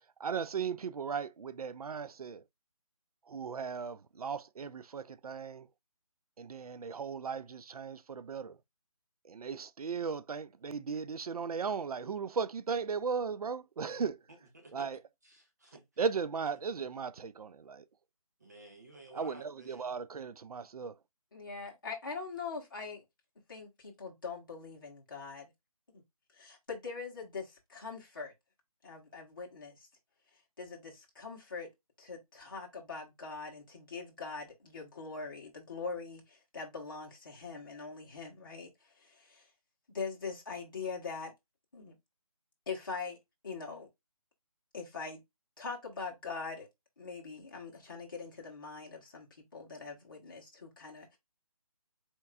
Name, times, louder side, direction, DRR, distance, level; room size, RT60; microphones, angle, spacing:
voice 1, 0.2-2.4 3.3-5.7 6.4-8.6 9.2-14.2 14.7-15.0 16.0-17.8 19.1-21.0, right 5 dB, 80° right, 0.5 m, -37 dB
voice 2, 14.3-14.9 15.2-15.9 18.4-20.0, right 2 dB, 30° right, 0.6 m, -53 dB
voice 3, 21.3-23.0 23.5-25.5 26.3-28.3 28.8-29.9 30.6-31.7 32.0-38.7 39.0-39.5 39.9-41.3 41.7-42.0 42.7-43.2 43.4-43.9 44.7-45.2 45.6-46.7 47.0-49.3 49.5-51.2, left 4 dB, 35° left, 1.4 m, -42 dB
4.4 x 3.5 x 2.3 m
hypercardioid pair, 175°, 19 cm